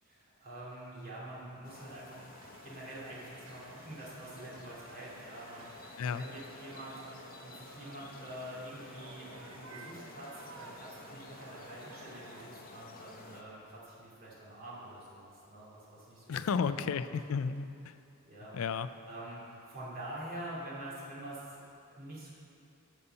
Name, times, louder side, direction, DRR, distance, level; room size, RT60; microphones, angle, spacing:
voice 1, 0.0-2.2 2.6-7.0 7.4-16.4 16.7-16.9 18.2-18.6 19.1-22.3, right 1 dB, 45° right, -7 dB, 2.6 m, -46 dB
sound 1, 1.6-13.4, left 3 dB, 45° left, 0.8 m, -52 dB
sound 2, 1.8-12.5, right 4 dB, 85° right, 0.7 m, -54 dB
voice 2, 16.3-17.9 18.5-18.9, left 6 dB, 70° left, 12 dB, 0.4 m, -33 dB
12.0 x 4.2 x 6.8 m, 2.7 s
head